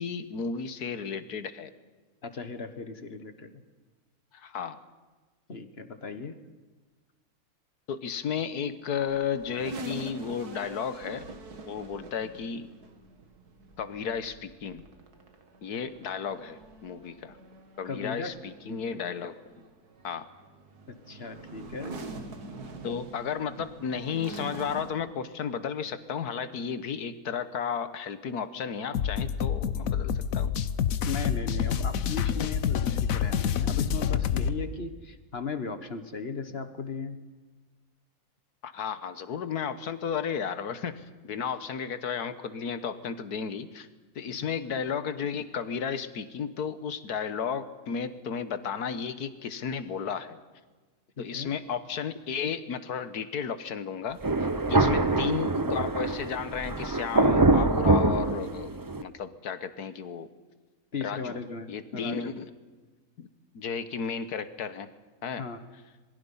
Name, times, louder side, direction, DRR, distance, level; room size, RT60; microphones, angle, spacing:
voice 1, 0.0-1.7 4.3-4.8 7.9-11.3 11.7-12.7 13.8-14.9 15.6-17.4 17.8-19.4 20.0-20.3 22.8-30.6 38.6-43.9 44.2-50.4 51.2-58.7 59.0-60.3 61.0-61.4 61.7-62.5 63.2-63.3 63.5-64.9 65.2-65.4, left 6 dB, 85° left, 12 dB, 1.8 m, -33 dB
voice 2, 2.2-3.5 5.5-6.4 17.8-18.3 18.6-18.8 20.9-22.0 31.0-37.2 51.2-51.5 54.8-55.0 60.9-62.3 65.4-65.6, left 4 dB, 45° left, 10 dB, 1.6 m, -37 dB
sound 1, 8.8-24.9, right 2 dB, 85° right, 2.4 m, -45 dB
sound 2, 28.9-34.6, left 8 dB, 65° left, 1.2 m, -27 dB
Thunder, 54.2-59.0, right 2 dB, 20° right, 0.6 m, -24 dB
27.0 x 21.5 x 5.6 m, 1.3 s
omnidirectional pair, 1.6 m